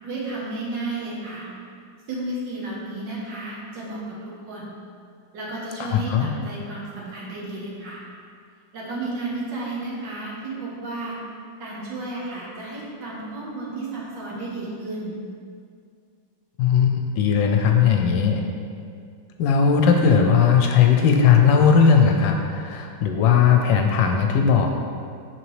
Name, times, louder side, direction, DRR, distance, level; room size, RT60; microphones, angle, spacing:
voice 1, 0.0-1.5 2.1-4.7 5.3-8.0 8.7-11.2 11.6-15.1, right 2 dB, 70° right, -5 dB, 1.7 m, -32 dB
voice 2, 5.9-6.3 16.6-18.4 19.4-24.7, left 6 dB, 80° left, 3 dB, 1.2 m, -18 dB
6.0 x 5.3 x 3.2 m, 2.2 s
omnidirectional pair, 2.1 m